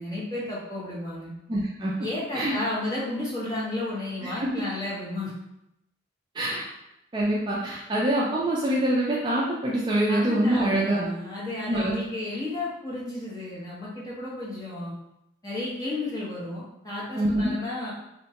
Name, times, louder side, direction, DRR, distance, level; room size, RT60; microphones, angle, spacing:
voice 1, 0.0-1.3 2.0-5.3 7.9-8.0 10.1-14.9 15.4-17.9, left 2 dB, 20° left, -7 dB, 0.9 m, -32 dB
voice 2, 1.5-1.9 2.3-2.6 4.2-4.5 6.3-6.6 7.1-11.1 11.7-11.9 17.1-17.5, right 1 dB, 25° right, -5 dB, 0.3 m, -25 dB
3.5 x 2.1 x 2.8 m, 0.87 s
head